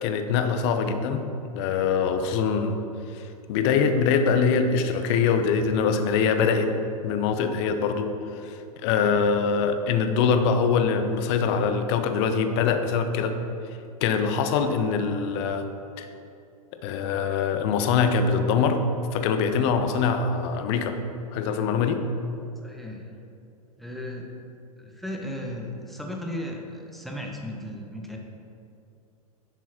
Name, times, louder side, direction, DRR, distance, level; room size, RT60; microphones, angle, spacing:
voice 1, 0.0-1.3 1.5-2.8 3.1-6.8 7.0-8.1 8.3-13.3 14.0-15.7 16.0-16.1 16.8-18.8 19.1-21.0 21.3-22.0, left 6 dB, 45° left, 8 dB, 0.9 m, -23 dB
voice 2, 22.6-23.1 23.8-24.3 24.8-28.2, left 1 dB, ahead, 0 dB, 1.2 m, -35 dB
10.5 x 6.3 x 4.4 m, 2.6 s
figure-of-eight pair, 95°, 19 cm